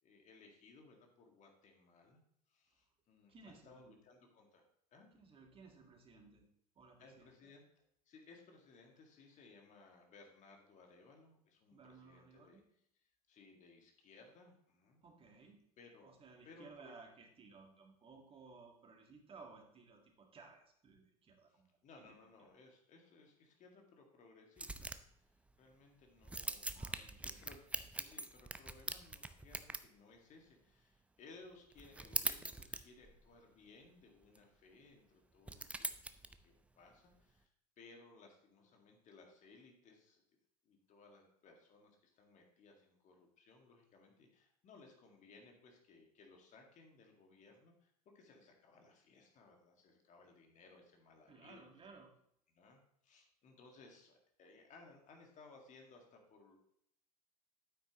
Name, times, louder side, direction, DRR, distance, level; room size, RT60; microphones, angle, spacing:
voice 1, 0.0-2.2 2.5-4.6 4.9-5.1 7.0-12.6 13.0-15.0 15.8-16.1 16.4-17.0 21.5-26.9 27.2-37.5 37.8-40.2 40.6-51.6 52.5-56.6, left 3 dB, 40° left, 2 dB, 2.0 m, -62 dB
voice 2, 3.3-3.9 5.2-6.5 6.8-7.5 11.7-12.6 15.0-15.6 16.0-21.7 22.0-22.2 26.7-27.3 51.3-52.1, right 4 dB, 25° right, 2 dB, 1.8 m, -59 dB
sound 1, 24.6-25.1 25.5-25.6 26.2-29.9 31.7-33.3 34.2-34.4 35.5-36.4, right 2 dB, 5° right, 0.5 m, -43 dB
8.9 x 8.8 x 3.0 m, 0.71 s
figure-of-eight pair, 75°, 20 cm